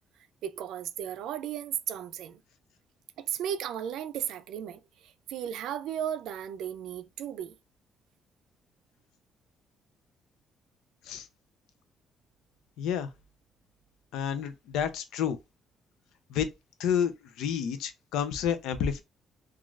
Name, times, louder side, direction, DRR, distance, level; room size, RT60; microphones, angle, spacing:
voice 1, 0.4-2.4 3.2-7.5, right 9 dB, 80° right, 0.3 m, -35 dB
voice 2, 12.8-13.1 14.1-15.4 16.3-16.5 16.8-19.0, left 8 dB, 90° left, 0.4 m, -30 dB
3.1 x 2.3 x 2.4 m
cardioid pair, 100°, 0 cm